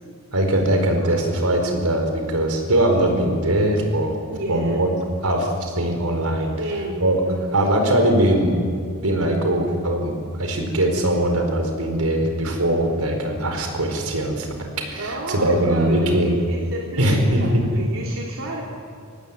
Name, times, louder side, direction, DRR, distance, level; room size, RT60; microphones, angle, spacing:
voice 1, 0.3-4.2 4.5-4.9 5.2-6.5 7.0-7.2 7.5-8.5 9.0-16.4 17.0-17.6, right 1 dB, 80° right, 4 dB, 4.7 m, -21 dB
voice 2, 4.3-4.8 6.5-7.8 15.0-18.6, right 1 dB, 65° right, -2 dB, 3.2 m, -31 dB
24.0 x 19.0 x 8.5 m, 2.4 s
head